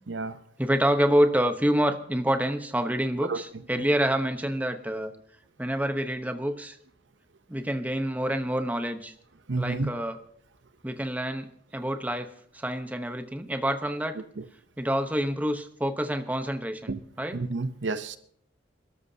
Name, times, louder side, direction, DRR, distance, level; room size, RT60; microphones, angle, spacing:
voice 1, 0.1-0.4 3.3-3.4 9.5-9.9 14.4-14.5 16.9-17.0 17.3-18.2, right 3 dB, 80° right, 0.8 m, -30 dB
voice 2, 0.6-5.1 5.6-6.8 7.5-9.1 9.6-10.2 10.8-14.2 14.8-17.4, equal, 10° right, 1.0 m, -27 dB
27.5 x 13.0 x 2.8 m
head